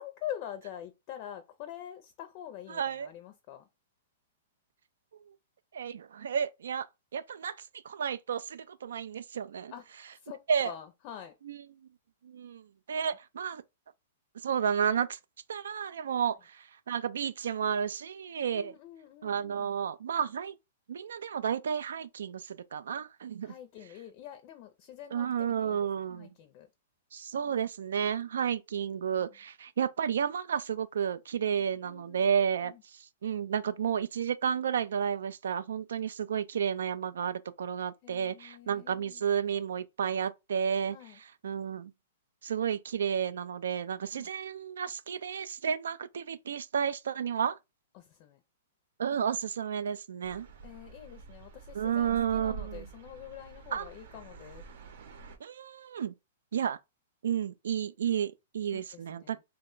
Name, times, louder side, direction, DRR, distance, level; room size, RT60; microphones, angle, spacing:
voice 1, 0.0-3.7 9.7-9.8 10.1-11.3 18.5-19.7 23.4-25.9 26.2-26.7 31.4-32.8 38.0-39.2 40.9-41.2 44.1-44.3 47.9-48.4 50.6-54.6 58.7-59.4, left 11 dB, 40° left, 0.4 m, -46 dB
voice 2, 2.7-3.1 5.7-6.8 7.1-9.7 10.5-10.7 11.5-11.6 12.2-13.6 14.4-15.2 15.5-18.7 19.2-20.6 20.9-23.5 25.1-26.3 27.1-41.9 42.4-47.6 49.0-50.5 51.7-52.9 53.7-53.9 55.4-56.1 56.5-56.8 57.2-59.4, right 8 dB, 85° right, 0.4 m, -32 dB
sound 1, 50.2-55.4, right 4 dB, 65° right, 0.8 m, -47 dB
2.9 x 2.2 x 3.7 m
hypercardioid pair, 155°, 0 cm